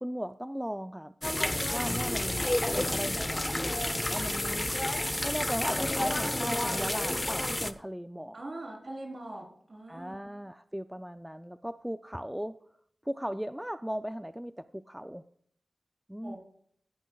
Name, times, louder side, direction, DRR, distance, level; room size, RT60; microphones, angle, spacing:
voice 1, 0.0-1.1 1.7-2.5 2.8-4.7 5.2-8.4 9.9-12.5 13.0-15.2 16.1-16.3, equal, 5° right, 11 dB, 0.4 m, -37 dB
sound 1, 1.2-7.7, left 1 dB, 20° left, 0.7 m, -30 dB
voice 2, 8.3-10.2 16.2-16.4, right 2 dB, 50° right, 0 dB, 3.8 m, -42 dB
15.0 x 10.5 x 2.3 m, 0.64 s
wide cardioid pair, 60°, 0 cm